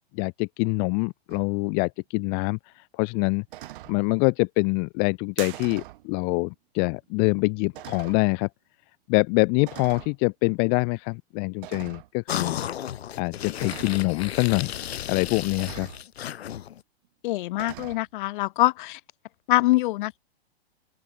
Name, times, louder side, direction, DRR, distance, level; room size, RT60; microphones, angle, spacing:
voice 1, 0.1-3.4 3.9-8.5 9.1-12.6 13.2-14.7 15.1-15.9, left 40 dB or more, 30° left, 0.6 m, -25 dB
sound 1, 1.3-1.5 3.5-4.0 5.5-6.0 6.9-7.0 7.7-8.3 9.7-10.2 11.6-12.1 13.6-14.1 15.6-16.0 17.5-18.0, right 16 dB, 55° right, 7.5 m, -42 dB
sound 2, 5.3-6.4, right 32 dB, 35° right, 1.3 m, -40 dB
sound 3, 12.3-16.8, left 10 dB, 75° left, 0.8 m, -34 dB
voice 2, 17.2-19.0 19.5-20.2, left 18 dB, 50° left, 1.9 m, -24 dB
open air
hypercardioid pair, 115°, 32 cm